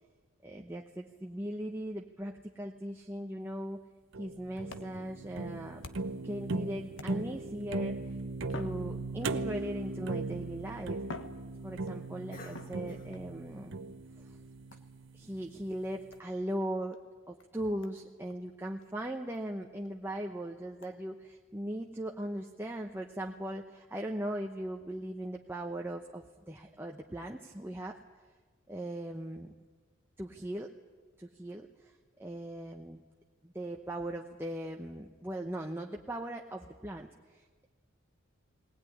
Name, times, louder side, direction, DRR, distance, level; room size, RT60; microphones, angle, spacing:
voice 1, 0.4-3.8 4.2-5.8 6.2-8.1 8.5-11.0 11.6-13.8 14.2-14.4 15.1-17.0 17.3-28.0 28.7-29.5 30.2-30.7 31.2-31.9 32.2-33.0 33.4-37.4, right 1 dB, 10° right, 1 dB, 0.8 m, -39 dB
sound 1, 4.1-15.3, right 3 dB, 60° right, 0.8 m, -38 dB
sound 2, 4.7-6.3 6.9-7.5 8.4-9.5 10.4-10.5 11.0-12.1 12.5-13.3 14.7-15.0 16.1-16.3 16.9-17.0 17.4-17.5 17.8-18.0 18.3-18.4 18.8-18.9 19.3-19.4 19.8-19.9 20.8-20.9, left 2 dB, 65° left, 1.4 m, -48 dB
Cough, 10.2-15.7, left 1 dB, 40° left, 1.9 m, -58 dB
19.5 x 19.0 x 9.9 m, 1.4 s
head